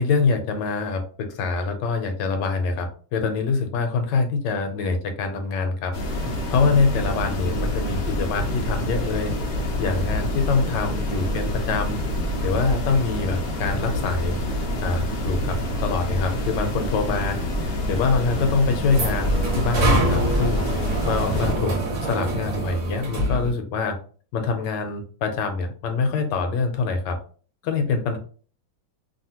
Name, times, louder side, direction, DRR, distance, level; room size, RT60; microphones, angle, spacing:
voice 1, 0.0-5.9 6.5-9.3 9.8-12.0 12.4-14.4 14.8-24.0 24.3-27.2 27.6-28.2, left 4 dB, 75° left, 6 dB, 1.2 m, -25 dB
sound 1, 5.9-21.5, left 1 dB, 60° left, 0.6 m, -27 dB
sound 2, 18.3-23.5, right 1 dB, 50° right, 1.0 m, -25 dB
2.7 x 2.7 x 2.8 m, 0.42 s
omnidirectional pair, 2.0 m